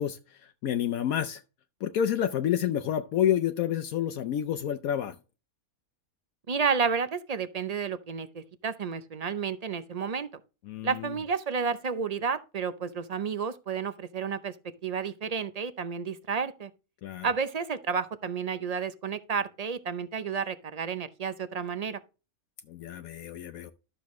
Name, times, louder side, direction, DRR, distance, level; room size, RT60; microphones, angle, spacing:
voice 1, 0.0-1.4 1.8-5.2 10.7-11.2 17.0-17.3 22.7-23.7, left 10 dB, 75° left, 1.1 m, -29 dB
voice 2, 6.5-10.3 10.8-14.5 14.8-16.7 17.2-22.0, right 6 dB, 45° right, 0.5 m, -31 dB
12.5 x 6.8 x 3.1 m
omnidirectional pair, 1.5 m